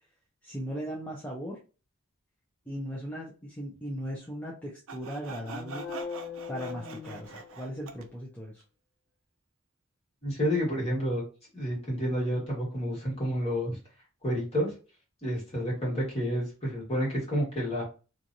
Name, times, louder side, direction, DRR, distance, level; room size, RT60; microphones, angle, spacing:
voice 1, 0.4-1.6 2.7-5.9 6.5-8.6, equal, 10° left, -4 dB, 0.5 m, -38 dB
Sawing, 4.9-8.1, right 5 dB, 65° right, 0.4 m, -44 dB
sound 1, 5.4-7.9, left 6 dB, 65° left, 0.4 m, -40 dB
voice 2, 10.2-11.2 11.5-13.8 14.2-14.7 15.2-17.8, equal, 30° left, -4 dB, 1.6 m, -29 dB
3.1 x 2.4 x 2.6 m, 0.34 s
head